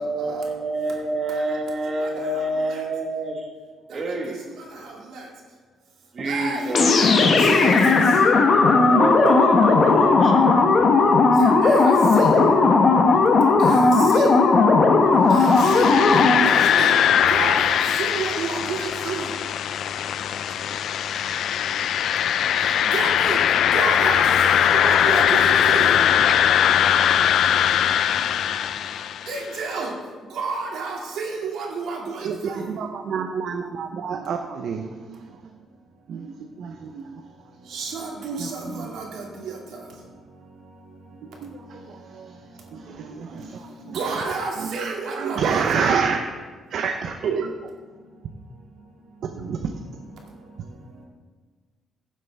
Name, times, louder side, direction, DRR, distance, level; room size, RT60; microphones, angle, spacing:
voice 1, 0.0-3.5 3.9-4.4 6.1-6.9 8.7-10.5, right 2 dB, 40° right, 0 dB, 1.6 m, -27 dB
voice 2, 4.8-5.2 6.2-8.0 11.4-12.3 13.6-14.4 15.3-16.0 16.4-16.9 17.3-19.3 22.9-23.4 23.7-26.0 29.3-29.9 30.3-32.7 37.7-39.6 43.9-45.8, right 4 dB, 80° right, -2 dB, 2.3 m, -30 dB
sound 1, 6.7-16.6, left 3 dB, 45° left, 1.0 m, -16 dB
sound 2, 15.4-29.4, left 9 dB, 70° left, 0.3 m, -20 dB
voice 3, 32.2-35.6 36.1-37.3 38.4-38.9 41.2-46.2 46.7-47.7 49.2-49.8, right 6 dB, 65° right, 4 dB, 0.7 m, -29 dB
15.5 x 7.6 x 3.5 m, 1.4 s
cardioid pair, 150°, 0 cm